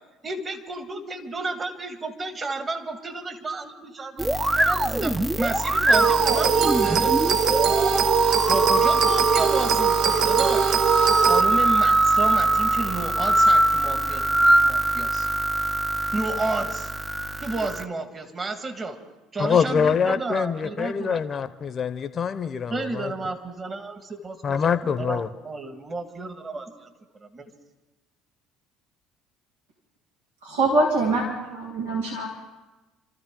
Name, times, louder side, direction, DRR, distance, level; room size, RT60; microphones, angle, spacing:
voice 1, 0.2-7.2 8.5-10.8 11.3-15.3 16.1-16.9 17.4-19.0 19.3-21.2 22.7-26.9 27.2-27.5, right 3 dB, 30° right, 7 dB, 1.8 m, -31 dB
sound 1, 4.2-17.9, right 1 dB, 10° right, 0.7 m, -23 dB
sound 2, 5.9-11.4, right 6 dB, 60° right, 0.7 m, -21 dB
voice 2, 19.4-23.1 24.4-25.3, left 6 dB, 40° left, 11 dB, 0.8 m, -24 dB
voice 3, 30.4-32.3, right 2 dB, 90° right, -2 dB, 2.5 m, -24 dB
28.0 x 13.5 x 3.8 m, 1.1 s
hypercardioid pair, 70°, 0 cm